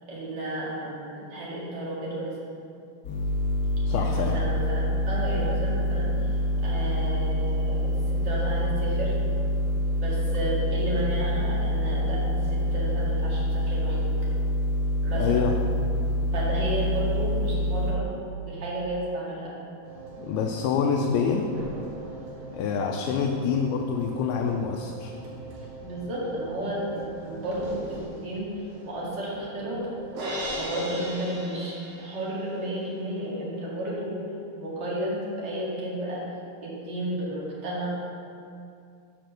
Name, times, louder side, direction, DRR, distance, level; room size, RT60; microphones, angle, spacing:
voice 1, 0.1-2.4 3.9-9.1 10.0-14.1 15.0-15.4 16.3-18.1 18.5-19.5 25.5-29.9 30.6-34.2 34.6-36.2 36.6-37.9, right 1 dB, 40° right, -7 dB, 1.9 m, -32 dB
sound 1, 3.0-17.9, equal, 55° left, 1.7 m, -26 dB
voice 2, 3.9-4.4 15.1-15.5 20.2-21.5 22.5-25.1, left 6 dB, 80° left, 2 dB, 2.4 m, -26 dB
sound 2, 19.8-30.5, right 2 dB, 75° right, 3.6 m, -42 dB
Crash cymbal, 30.2-32.4, equal, 55° right, 3.0 m, -35 dB
7.8 x 5.9 x 6.4 m, 2.5 s
omnidirectional pair, 4.5 m